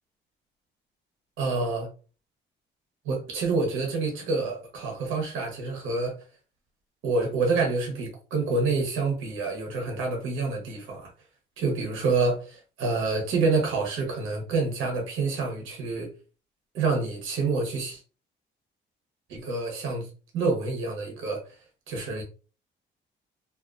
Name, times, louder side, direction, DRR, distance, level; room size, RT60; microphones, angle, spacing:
voice 1, 1.4-1.9 3.0-6.2 7.0-11.1 11.6-16.1 16.7-18.0 19.3-21.6 21.9-22.2, right 3 dB, 90° right, 0.9 m, -27 dB
2.6 x 2.4 x 2.4 m
cardioid pair, 90°, 20 cm